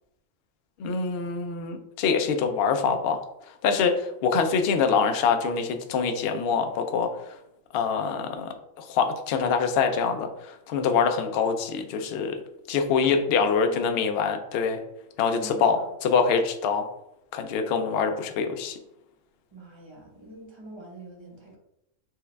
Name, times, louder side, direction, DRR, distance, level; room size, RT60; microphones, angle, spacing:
voice 1, 0.8-3.2 3.6-7.1 7.7-8.5 8.9-12.3 12.7-14.8 15.2-16.9 17.3-18.8, left 5 dB, 65° left, 6 dB, 0.6 m, -25 dB
voice 2, 15.4-15.9 19.5-21.6, right 1 dB, 25° right, -2 dB, 1.0 m, -44 dB
4.4 x 2.3 x 3.3 m, 0.83 s
omnidirectional pair, 1.3 m